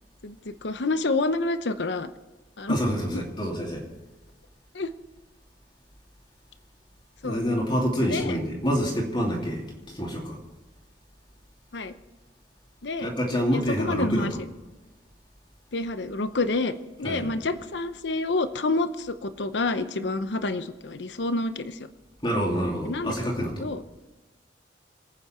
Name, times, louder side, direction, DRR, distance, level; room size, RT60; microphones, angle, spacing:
voice 1, 0.2-2.1 2.6-3.2 4.7-4.9 7.2-7.4 8.0-8.4 11.7-11.9 12.8-13.1 13.5-14.3 15.7-16.7 17.0-21.8 22.8-23.1 23.6-23.8, left 2 dB, 75° left, 11 dB, 0.8 m, -28 dB
voice 2, 2.7-3.8 7.2-10.4 13.0-14.4 17.0-17.3 22.2-23.6, equal, 25° left, -2 dB, 2.9 m, -27 dB
26.5 x 9.2 x 4.4 m, 1.1 s
head